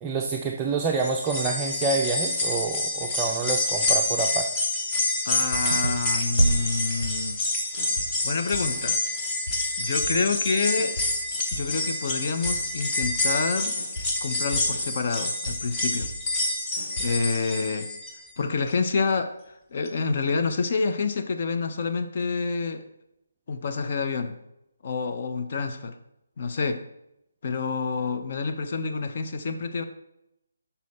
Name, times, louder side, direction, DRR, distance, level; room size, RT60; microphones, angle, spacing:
voice 1, 0.0-4.5, right 4 dB, 15° right, 0 dB, 0.4 m, -27 dB
sound 1, 1.0-18.3 18.7-18.8 19.9-20.0, left 2 dB, 20° left, 1.0 m, -28 dB
voice 2, 5.2-7.4 8.2-9.0 9.8-11.0 11.5-13.8 14.2-16.1 17.0-17.9 18.4-22.8 23.5-24.4 24.8-25.9 26.4-26.8 27.4-29.8, left 4 dB, 45° left, 7 dB, 0.6 m, -28 dB
sound 2, 5.5-7.5 7.8-13.5 13.8-17.2, left 1 dB, 70° left, 2.4 m, -40 dB
sound 3, 5.7-7.9, right 2 dB, 90° right, 0.4 m, -28 dB
6.2 x 5.5 x 4.1 m, 0.83 s
figure-of-eight pair, 150°, 0 cm